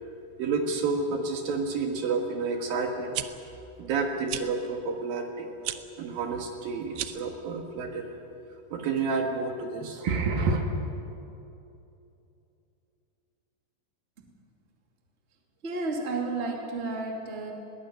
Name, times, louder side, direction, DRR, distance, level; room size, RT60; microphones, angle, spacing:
voice 1, 0.4-3.1 3.8-5.5 6.0-8.2 8.7-10.6, right 4 dB, 65° right, 3 dB, 3.1 m, -29 dB
sound 1, 3.1-3.3 4.3-4.5 5.6-5.8 6.9-7.3, right 14 dB, 90° right, 3.0 m, -33 dB
voice 2, 15.6-17.5, right 3 dB, 20° right, 1 dB, 2.0 m, -32 dB
21.0 x 19.0 x 9.4 m, 2.8 s
omnidirectional pair, 4.7 m